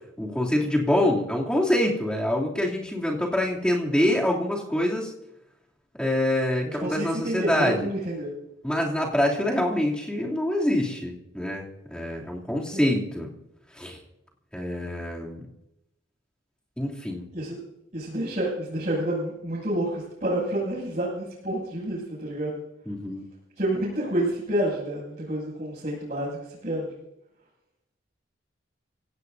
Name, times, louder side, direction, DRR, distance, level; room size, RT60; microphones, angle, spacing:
voice 1, 0.2-5.1 6.0-7.8 8.6-13.3 13.7-14.0 14.5-15.4 16.8-17.3 22.9-23.3, left 1 dB, 5° left, -3 dB, 2.9 m, -25 dB
voice 2, 6.6-8.3 12.7-12.8 17.3-17.6 17.9-22.6 23.6-27.0, right 1 dB, 40° right, -10 dB, 7.1 m, -29 dB
25.5 x 17.0 x 2.7 m, 0.86 s
head